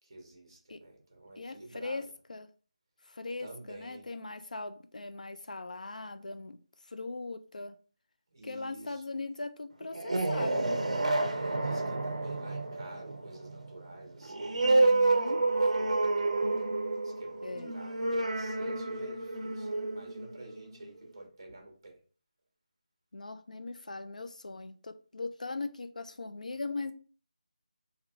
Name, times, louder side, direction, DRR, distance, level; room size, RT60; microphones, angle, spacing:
voice 1, 0.0-2.1 3.4-4.1 8.3-9.0 11.1-16.7 17.0-22.0, right 2 dB, 30° right, 0.9 m, -49 dB
voice 2, 1.4-2.5 3.1-6.6 6.9-7.7 8.4-10.8 14.6-15.4 17.4-17.7 23.1-26.9, left 3 dB, 85° left, 0.4 m, -40 dB
sound 1, 9.8-21.0, right 2 dB, 60° right, 0.5 m, -30 dB
2.7 x 2.5 x 3.0 m
figure-of-eight pair, 180°, 4 cm